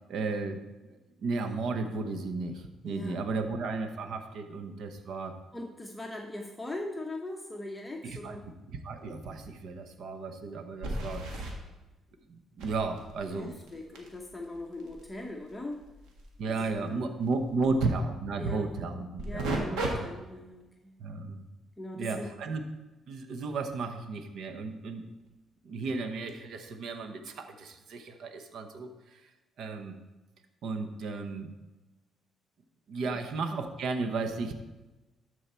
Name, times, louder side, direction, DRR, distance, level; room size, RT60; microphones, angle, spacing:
voice 1, 0.1-5.4 8.0-8.4 8.7-11.2 12.3-13.5 16.4-19.8 21.0-21.4 21.9-22.6 23.1-25.0 25.6-29.3 29.6-29.9 30.6-31.5 32.9-34.5, right 3 dB, 70° right, 7 dB, 0.9 m, -34 dB
voice 2, 2.8-3.5 5.5-8.5 13.3-15.8 16.5-17.0 17.6-17.7 18.4-18.7 19.3-20.9 21.8-22.3 33.0-33.2, left 1 dB, 10° left, 0 dB, 0.9 m, -40 dB
sound 1, 9.0-9.1 9.4-9.5 10.8-11.5 12.6-17.9 19.2-19.9 20.4-20.6 25.3-25.4 26.3-26.4, right 2 dB, 85° right, 1.7 m, -38 dB
12.5 x 4.8 x 4.5 m, 1.1 s
cardioid pair, 100°, 0 cm